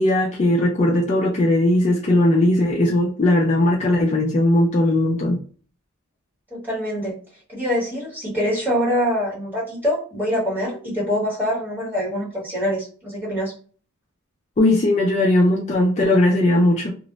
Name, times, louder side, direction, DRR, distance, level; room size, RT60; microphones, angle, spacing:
voice 1, 0.0-5.4 14.6-16.9, left 1 dB, 30° left, -1 dB, 0.3 m, -18 dB
voice 2, 6.5-7.2 7.5-13.5, equal, 10° right, -6 dB, 1.1 m, -24 dB
2.1 x 2.0 x 3.7 m, 0.41 s
head